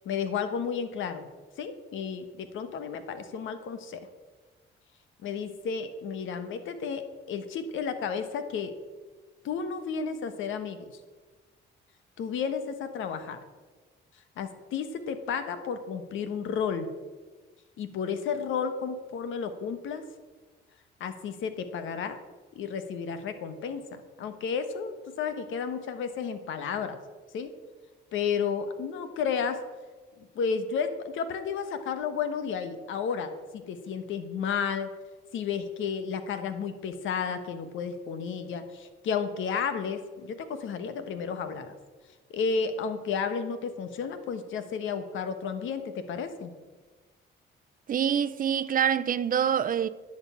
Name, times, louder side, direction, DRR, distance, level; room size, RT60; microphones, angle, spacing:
voice 1, 0.0-1.3 1.6-4.0 5.2-7.0 7.3-8.7 9.4-10.9 12.2-13.4 14.4-16.9 17.8-20.0 21.0-22.2 22.5-27.0 27.3-27.5 28.1-29.6 30.2-34.9 35.3-41.7 42.3-46.5, left 6 dB, 80° left, 1.2 m, -32 dB
voice 2, 47.9-49.9, right 8 dB, 45° right, 0.6 m, -25 dB
11.0 x 5.3 x 8.4 m
cardioid pair, 90°, 20 cm